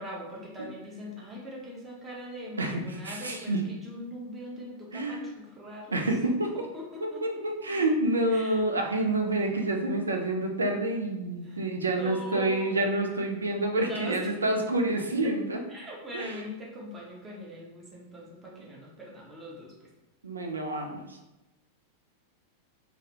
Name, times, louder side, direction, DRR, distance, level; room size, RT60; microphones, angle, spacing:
voice 1, 0.0-6.0 6.5-7.2 8.3-8.6 11.4-11.6 11.9-12.8 13.9-14.2 15.7-19.7, equal, 15° right, -3 dB, 0.7 m, -41 dB
voice 2, 2.6-3.6 4.9-5.2 5.9-6.7 7.0-15.6 16.1-16.4 18.5-18.7 20.2-21.2, right 2 dB, 75° right, 4 dB, 0.3 m, -28 dB
2.3 x 2.1 x 2.8 m, 1.0 s
figure-of-eight pair, 90°, 0 cm